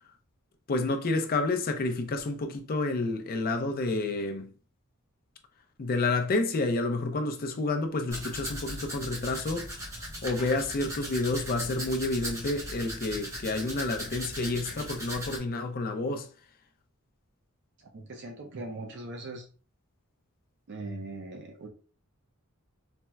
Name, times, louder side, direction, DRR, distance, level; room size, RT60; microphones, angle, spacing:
voice 1, 0.7-4.5 5.8-9.7 10.2-16.3, left 2 dB, 45° left, 0.5 m, -29 dB
Domestic sounds home sounds, 8.1-15.4, equal, 15° right, 0.7 m, -38 dB
voice 2, 17.8-19.5 20.7-21.7, right 2 dB, 55° right, 0.5 m, -40 dB
4.2 x 2.0 x 2.3 m
head